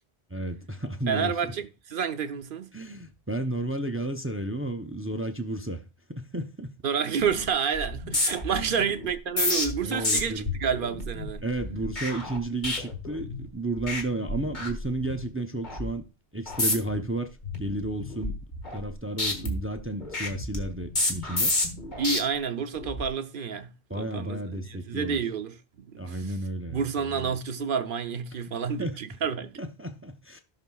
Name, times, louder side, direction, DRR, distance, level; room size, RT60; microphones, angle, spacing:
voice 1, 0.3-1.5 2.7-5.8 6.1-6.7 8.5-8.8 9.8-10.5 11.4-16.1 16.3-18.4 18.7-21.6 23.9-25.2 26.0-27.4 28.8-29.0 29.6-30.4, right 2 dB, 15° right, 0.4 m, -32 dB
voice 2, 1.1-2.7 6.8-11.5 22.0-26.4 26.7-29.6, right 6 dB, 55° right, 0.8 m, -29 dB
sound 1, 7.2-7.5 7.7-13.5 13.8-14.0 14.3-15.2 15.6-15.9 16.5-17.0 17.4-18.9 19.2-22.2 22.7-23.1, left 2 dB, 45° left, 1.7 m, -30 dB
17.5 x 5.9 x 2.3 m
omnidirectional pair, 1.1 m